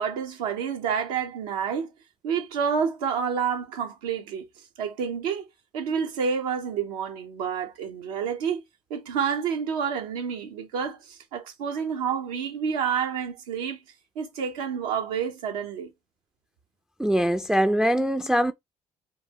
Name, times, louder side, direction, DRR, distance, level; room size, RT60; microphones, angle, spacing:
voice 1, 0.0-1.9 2.2-4.5 4.8-5.5 5.7-8.6 8.9-13.8 14.2-15.9, right 7 dB, 90° right, 0.7 m, -29 dB
voice 2, 17.0-18.5, equal, 5° right, 0.3 m, -22 dB
3.8 x 2.3 x 2.8 m
hypercardioid pair, 60°, 19 cm